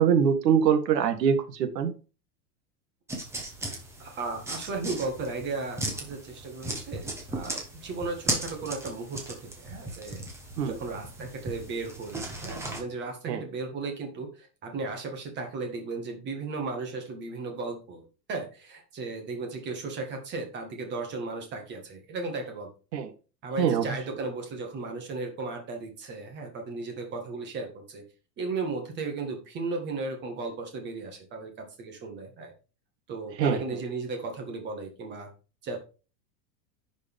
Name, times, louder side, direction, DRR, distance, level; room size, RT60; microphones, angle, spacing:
voice 1, 0.0-1.9 10.6-10.7 13.3-13.4 22.9-23.1 23.6-23.9 33.4-33.8, right 7 dB, 80° right, 8 dB, 1.8 m, -24 dB
sound 1, 3.1-12.8, right 2 dB, 5° right, 1.0 m, -37 dB
voice 2, 4.0-10.2 10.7-18.0 18.3-22.7 23.4-28.0 28.4-31.5 31.8-32.5 33.1-35.3 35.6-35.8, right 3 dB, 20° right, 3 dB, 1.8 m, -35 dB
10.5 x 5.2 x 3.6 m, 0.34 s
supercardioid pair, 170°, 49 cm